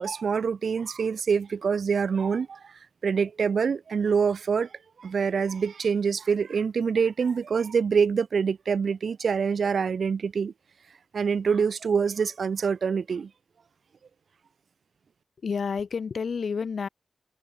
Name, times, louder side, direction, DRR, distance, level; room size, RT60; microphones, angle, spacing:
voice 1, 0.0-2.7 3.0-4.7 5.0-10.5 11.1-13.3, right 6 dB, 65° right, 0.5 m, -25 dB
voice 2, 15.4-16.9, left 5 dB, 60° left, 4.3 m, -29 dB
wide cardioid pair, 175°, 0 cm